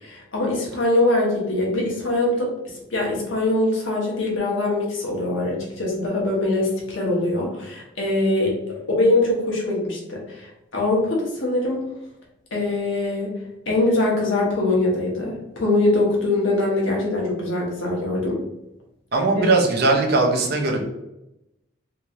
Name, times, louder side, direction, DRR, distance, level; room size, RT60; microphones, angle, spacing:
voice 1, 0.0-2.5 2.9-11.8 12.5-13.3 13.7-18.4 19.4-19.5, left 2 dB, 75° left, -3 dB, 1.0 m, -23 dB
voice 2, 19.1-20.8, right 3 dB, 50° right, 1 dB, 0.5 m, -19 dB
3.0 x 2.8 x 2.4 m, 0.89 s
head